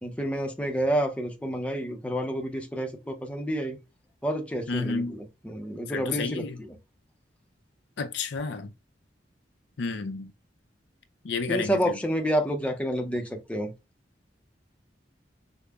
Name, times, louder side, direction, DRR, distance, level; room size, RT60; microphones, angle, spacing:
voice 1, 0.0-3.8 4.2-6.7 11.5-13.7, equal, 5° left, 0.5 m, -29 dB
voice 2, 4.7-5.2 5.9-6.6 8.0-8.7 9.8-10.3 11.2-12.0, left 4 dB, 75° left, 0.5 m, -31 dB
5.0 x 2.1 x 2.2 m
head